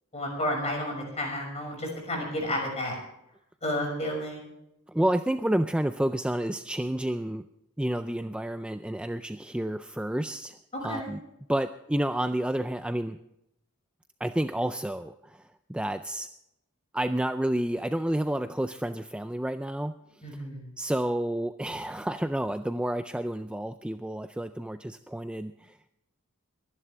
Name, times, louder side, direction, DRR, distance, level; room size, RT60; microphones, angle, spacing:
voice 1, 0.1-3.0 3.6-4.4 10.9-11.1 20.2-20.7, left 1 dB, 30° left, 1 dB, 6.0 m, -31 dB
voice 2, 4.9-7.4 7.8-11.2 11.5-13.2 14.2-16.3 16.9-19.9 20.8-25.9, right 1 dB, 5° right, 9 dB, 0.4 m, -30 dB
23.0 x 11.0 x 3.4 m, 0.83 s
head